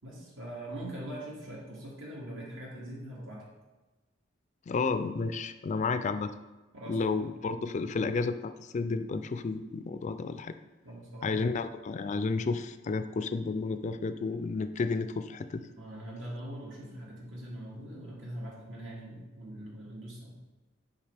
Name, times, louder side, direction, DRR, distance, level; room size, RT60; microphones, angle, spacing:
voice 1, 0.0-3.4 6.7-7.2 10.8-11.4 15.8-20.3, right 1 dB, 75° right, -4 dB, 2.0 m, -42 dB
voice 2, 4.7-6.3 6.9-10.5 11.2-15.7, left 4 dB, 40° left, 10 dB, 0.3 m, -31 dB
7.2 x 5.1 x 3.4 m, 1.2 s
head